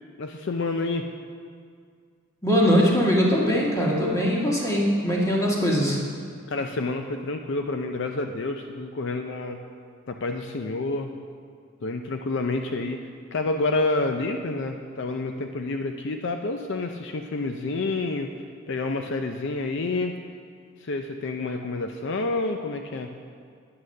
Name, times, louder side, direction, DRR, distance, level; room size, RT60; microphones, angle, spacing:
voice 1, 0.2-1.1 6.5-9.6 10.1-11.1 11.8-13.0 13.3-18.3 18.7-20.1 20.8-23.1, left 3 dB, 55° left, 5 dB, 0.5 m, -28 dB
voice 2, 2.4-6.0, equal, 15° left, -3 dB, 1.7 m, -21 dB
9.6 x 8.5 x 6.5 m, 2.1 s
head